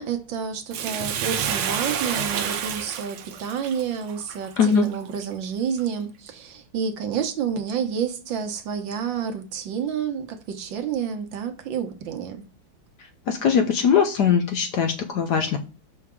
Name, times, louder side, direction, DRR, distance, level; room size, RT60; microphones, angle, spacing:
voice 1, 0.0-12.4, right 7 dB, 70° right, 1.6 m, -29 dB
Bathtub (filling or washing), 0.7-5.2 5.8-5.9, right 8 dB, 85° right, 1.5 m, -29 dB
voice 2, 13.3-15.6, left 6 dB, 70° left, 1.1 m, -20 dB
6.4 x 4.7 x 3.6 m
omnidirectional pair, 2.3 m